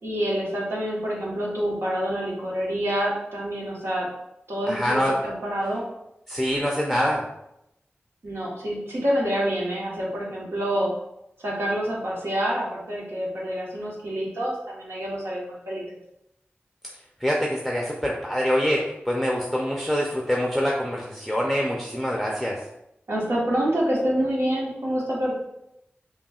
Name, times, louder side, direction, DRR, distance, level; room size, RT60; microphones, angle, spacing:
voice 1, 0.0-4.1 4.5-5.8 8.2-10.9 11.4-16.0 23.1-25.3, equal, 85° right, -5 dB, 1.2 m, -27 dB
voice 2, 4.7-5.2 6.3-7.3 17.2-22.6, equal, ahead, -2 dB, 0.5 m, -25 dB
5.6 x 2.3 x 2.4 m, 0.84 s
wide cardioid pair, 55°, 4 cm